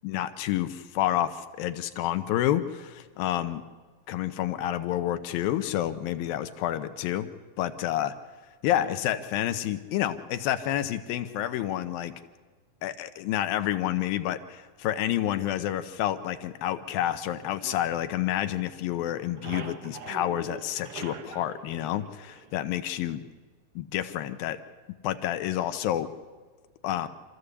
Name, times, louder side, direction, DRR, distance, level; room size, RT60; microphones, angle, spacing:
voice 1, 0.0-3.6 4.1-7.3 7.6-8.1 8.6-12.1 12.8-23.2 23.8-24.6 25.0-26.1 26.8-27.1, left 12 dB, 85° left, 10 dB, 2.7 m, -29 dB
sound 1, 17.6-18.8 19.1-22.8, right 7 dB, 65° right, 1.5 m, -44 dB
26.5 x 14.0 x 8.3 m, 1.4 s
omnidirectional pair, 4.1 m